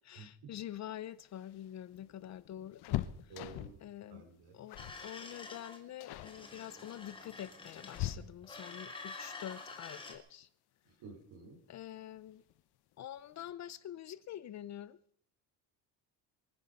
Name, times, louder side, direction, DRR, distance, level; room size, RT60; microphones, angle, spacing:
voice 1, 0.0-3.3 3.8-4.3 4.5-10.5 11.7-12.4 13.0-15.0, left 11 dB, 40° left, 0.5 m, -46 dB
sound 1, 1.2-3.9 4.7-5.0 5.3-5.6 6.0-6.4 7.2-8.7 10.4-10.5 10.9-11.0 12.2-12.6 12.9-13.0 13.3-13.5, left 14 dB, 65° left, 0.9 m, -41 dB
voice 2, 3.3-3.8 4.1-4.6 11.0-11.6, right 4 dB, 65° right, 4.6 m, -51 dB
sound 2, 4.8-5.8 6.2-8.2 8.4-10.1, left 3 dB, 10° left, 1.8 m, -48 dB
23.5 x 9.9 x 5.3 m
cardioid pair, 165°, 43 cm